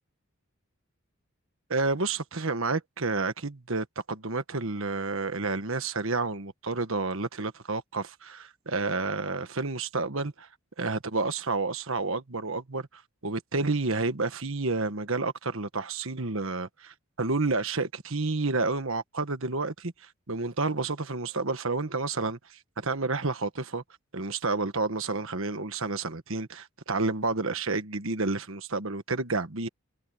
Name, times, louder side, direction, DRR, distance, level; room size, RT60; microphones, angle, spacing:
voice 1, 1.7-10.5 10.8-23.8 24.1-29.7, right 3 dB, 65° right, 1.4 m, -30 dB
head